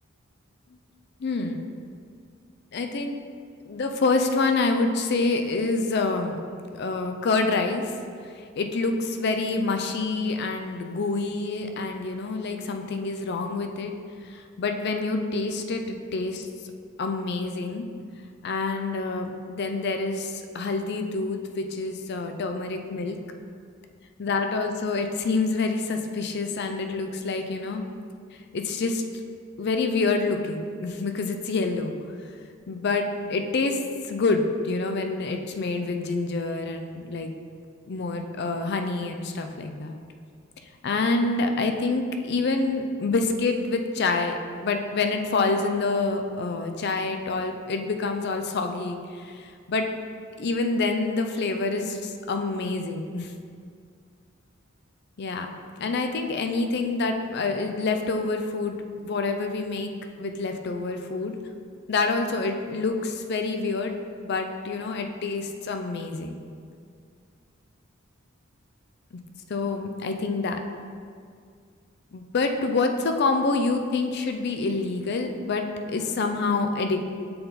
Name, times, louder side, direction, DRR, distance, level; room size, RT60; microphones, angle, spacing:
voice 1, 1.2-1.6 2.7-3.2 3.7-6.4 6.7-7.9 8.6-13.9 14.2-16.5 17.0-17.9 18.4-23.2 24.2-27.8 28.5-29.0 29.6-31.9 32.7-33.8 34.1-37.3 37.9-40.0 40.8-49.9 50.4-53.3 55.2-55.5 55.8-58.8 59.0-59.9 60.2-61.4 61.9-64.0 64.2-66.4 69.5-70.6 72.1-77.1, left 3 dB, 55° left, 5 dB, 0.5 m, -27 dB
6.7 x 4.1 x 3.9 m, 2.2 s
head